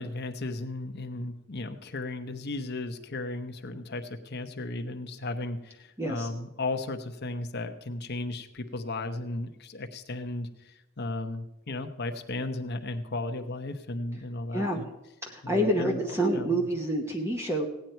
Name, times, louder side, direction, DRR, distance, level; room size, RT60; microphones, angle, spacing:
voice 1, 0.0-14.9 15.4-16.7, left 2 dB, 50° left, 7 dB, 0.9 m, -35 dB
voice 2, 6.0-6.3 14.5-14.9 15.2-17.7, right 1 dB, 10° right, 2 dB, 0.9 m, -27 dB
17.0 x 9.3 x 4.5 m, 0.97 s
head